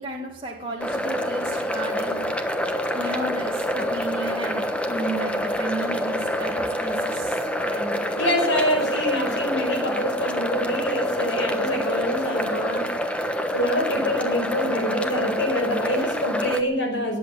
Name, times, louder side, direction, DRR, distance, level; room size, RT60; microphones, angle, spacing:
voice 1, 0.0-2.2 2.9-8.2, right 2 dB, 25° right, -2 dB, 2.1 m, -33 dB
sound 1, 0.8-16.6, equal, 5° left, 1.1 m, -27 dB
voice 2, 7.9-12.9 13.5-17.2, equal, 65° left, 2 dB, 5.5 m, -25 dB
19.5 x 8.2 x 8.6 m, 0.84 s
head